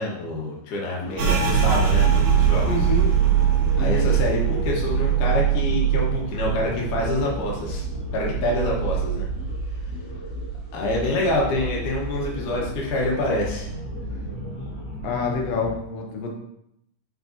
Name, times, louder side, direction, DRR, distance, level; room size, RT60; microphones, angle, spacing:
voice 1, 0.0-2.9 3.8-7.8 8.1-9.3 10.7-13.7, left 2 dB, 85° left, -3 dB, 2.9 m, -26 dB
sound 1, 1.0-15.7, left 1 dB, 10° left, 1.3 m, -34 dB
sound 2, 1.2-10.6 10.9-12.1 12.4-12.9 13.4-14.0, right 9 dB, 75° right, 2.4 m, -23 dB
voice 2, 2.7-3.1 3.8-4.2 15.0-16.3, left 4 dB, 70° left, 1 dB, 1.7 m, -27 dB
7.7 x 4.7 x 2.7 m, 0.78 s
omnidirectional pair, 3.5 m